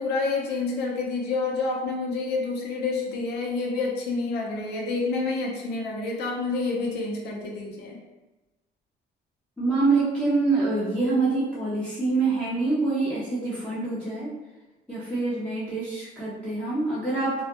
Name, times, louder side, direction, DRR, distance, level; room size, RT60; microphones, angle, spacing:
voice 1, 0.0-8.0, left 3 dB, 80° left, 0 dB, 0.6 m, -28 dB
voice 2, 9.6-14.3 14.9-17.4, right 3 dB, 5° left, -10 dB, 0.7 m, -25 dB
2.3 x 2.1 x 2.8 m, 1.1 s
cardioid pair, 110°, 17 cm